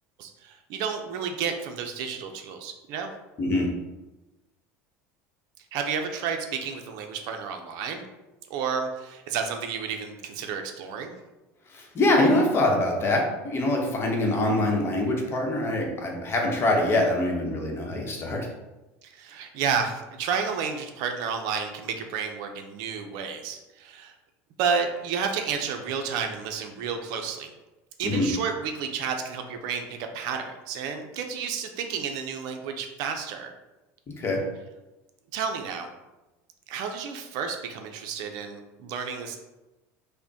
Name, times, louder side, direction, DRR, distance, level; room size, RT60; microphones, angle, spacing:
voice 1, 0.2-3.1 5.7-8.1 8.5-11.2 19.0-24.1 24.6-27.5 28.0-33.5 35.3-35.9 36.7-39.4, right 6 dB, 65° right, 5 dB, 0.5 m, -31 dB
voice 2, 3.4-3.7 11.7-18.5 28.0-28.3 34.1-34.4, left 1 dB, 35° left, 0 dB, 0.9 m, -24 dB
5.0 x 2.1 x 2.8 m, 1.1 s
supercardioid pair, 105°, 7 cm